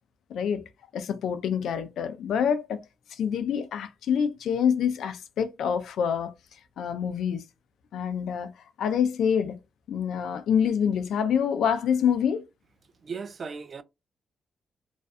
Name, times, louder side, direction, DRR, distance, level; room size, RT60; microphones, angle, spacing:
voice 1, 0.3-2.8 3.1-6.3 6.8-7.4 7.9-8.5 8.8-9.6 9.9-12.5, left 7 dB, 80° left, 0.4 m, -26 dB
voice 2, 13.0-13.8, right 5 dB, 50° right, 0.3 m, -36 dB
2.4 x 2.3 x 2.5 m
cardioid pair, 80°, 0 cm